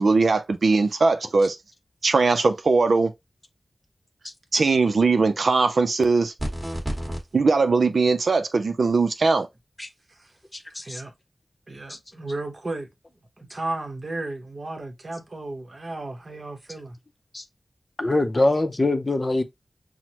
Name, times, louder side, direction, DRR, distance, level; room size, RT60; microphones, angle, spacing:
voice 1, 0.0-1.5 2.0-3.1 4.5-6.3 7.3-9.5, right 4 dB, 75° right, 0.4 m, -20 dB
voice 2, 4.2-4.6 9.8-9.9 10.5-11.0 11.9-12.0 17.3-17.5 18.0-19.4, left 2 dB, 35° left, 0.6 m, -24 dB
sound 1, 6.4-7.2, equal, 25° right, 1.4 m, -29 dB
voice 3, 11.7-12.9 13.4-17.0, right 2 dB, 50° right, 1.0 m, -34 dB
5.9 x 2.1 x 2.8 m
wide cardioid pair, 90°, 0 cm